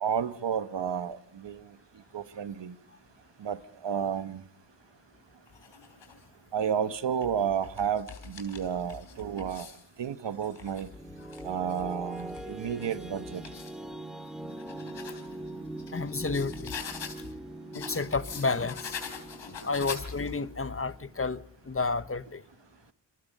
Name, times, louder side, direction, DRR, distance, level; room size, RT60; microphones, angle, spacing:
voice 1, 0.0-1.6 2.1-2.7 3.4-4.4 6.5-9.7 10.0-10.9 11.4-13.4, right 8 dB, 75° right, 1.4 m, -31 dB
sound 1, 5.5-6.2 6.9-9.9 10.3-13.8 14.3-17.3 17.7-20.5, left 6 dB, 80° left, 4.0 m, -44 dB
sound 2, 10.6-21.4, right 1 dB, ahead, 2.4 m, -42 dB
voice 2, 15.9-16.7 17.7-18.9 19.6-22.4, left 4 dB, 30° left, 1.1 m, -31 dB
29.0 x 23.0 x 5.5 m
cardioid pair, 45°, 43 cm